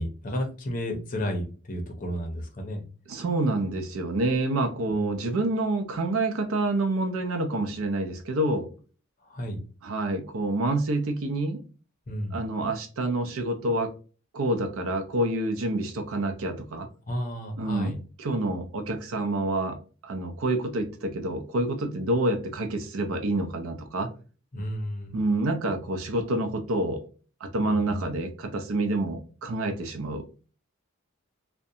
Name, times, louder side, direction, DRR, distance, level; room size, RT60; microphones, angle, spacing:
voice 1, 0.0-2.8 4.9-5.0 9.3-9.6 12.1-12.4 17.1-18.0 24.5-25.2 27.6-28.0, equal, 40° left, 0.6 m, -32 dB
voice 2, 3.1-8.7 9.8-11.6 12.3-13.9 14.3-16.9 17.6-19.8 20.0-24.1 25.1-27.0 27.4-30.5, right 2 dB, 80° right, 0.5 m, -28 dB
2.4 x 2.2 x 2.7 m
head